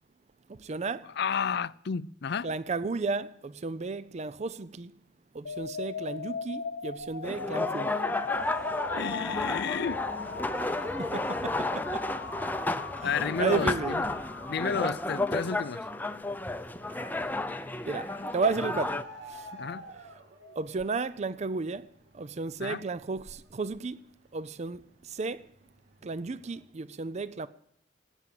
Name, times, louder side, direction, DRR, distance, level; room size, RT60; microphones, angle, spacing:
voice 1, 0.5-1.1 2.4-4.9 5.3-8.0 10.7-12.1 13.0-14.0 17.9-19.0 19.3-19.6 20.6-21.9 22.1-24.0 24.3-25.5 26.0-27.5, right 4 dB, 35° right, 0.5 m, -33 dB
voice 2, 1.2-2.5 8.9-10.0 13.0-14.0 14.5-15.9 19.6-19.8 22.6-22.8, left 6 dB, 60° left, 0.5 m, -31 dB
sound 1, 5.5-15.5, left 5 dB, 90° left, 0.9 m, -39 dB
sound 2, 7.2-19.0, left 2 dB, 10° left, 0.7 m, -32 dB
sound 3, 8.1-24.9 25.2-26.6, equal, 75° right, 2.8 m, -52 dB
18.5 x 9.1 x 7.7 m
head